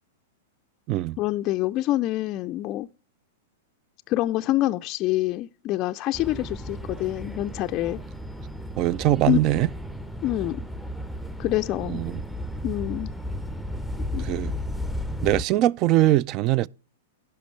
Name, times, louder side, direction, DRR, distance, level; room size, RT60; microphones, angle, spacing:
voice 1, 1.2-2.9 4.1-8.0 9.3-9.4 10.2-10.7 11.4-12.0 12.6-13.1 14.0-14.3, left 15 dB, 40° left, 0.4 m, -26 dB
sound 1, 6.1-15.4, left 1 dB, ahead, 0.6 m, -34 dB
voice 2, 8.8-9.7 11.9-12.2 14.2-14.5 15.2-16.7, right 15 dB, 40° right, 0.3 m, -22 dB
16.0 x 5.6 x 3.2 m
hypercardioid pair, 110°, 0 cm